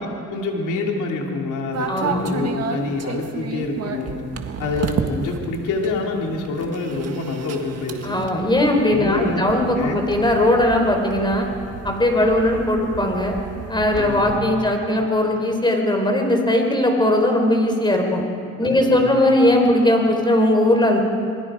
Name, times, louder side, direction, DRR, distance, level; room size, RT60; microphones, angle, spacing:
voice 1, 0.3-4.1 4.6-8.1 8.9-10.0 13.9-14.3 18.6-19.1, left 3 dB, 85° left, 0 dB, 3.0 m, -26 dB
sound 1, 1.7-14.4, right 6 dB, 55° right, 1.8 m, -32 dB
voice 2, 1.9-2.3 8.0-11.5 11.8-13.4 13.7-18.2 18.6-21.0, left 1 dB, 15° left, 3 dB, 4.2 m, -19 dB
27.0 x 21.5 x 5.0 m, 2.5 s
cardioid pair, 90°, 30 cm